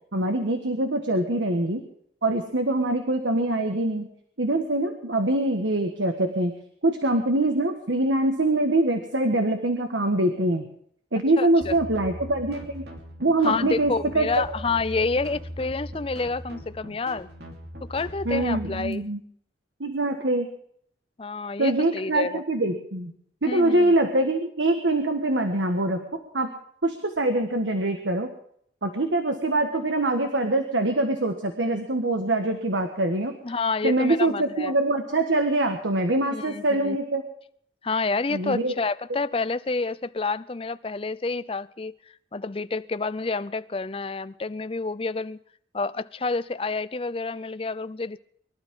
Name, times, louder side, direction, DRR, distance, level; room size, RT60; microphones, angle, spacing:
voice 1, 0.1-1.8 2.2-4.1 4.4-6.5 6.8-10.6 11.1-12.9 13.2-14.4 18.2-19.2 19.8-20.5 21.6-23.1 23.4-26.5 26.8-28.3 28.8-33.3 33.8-37.2 38.3-38.7, right 2 dB, 85° right, 6 dB, 1.6 m, -24 dB
voice 2, 11.4-11.7 13.4-17.3 17.9-19.0 21.2-22.4 23.5-23.9 33.4-34.7 36.3-37.0 37.8-42.0 42.3-45.4 45.7-48.2, left 3 dB, 30° left, 15 dB, 0.5 m, -29 dB
sound 1, 11.6-18.9, equal, 60° right, 2.9 m, -40 dB
23.0 x 12.5 x 3.7 m, 0.65 s
head